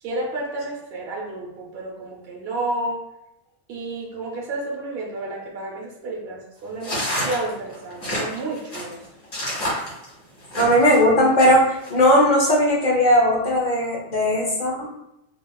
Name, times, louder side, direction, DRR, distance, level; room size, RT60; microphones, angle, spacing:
voice 1, 0.0-3.0 3.7-9.0, right 2 dB, 60° right, -2 dB, 0.9 m, -31 dB
sound 1, 6.8-11.0 11.4-11.9, equal, 65° left, 1.5 m, -28 dB
voice 2, 10.6-14.9, equal, 50° left, -3 dB, 0.6 m, -18 dB
2.9 x 2.7 x 2.2 m, 0.82 s
omnidirectional pair, 1.3 m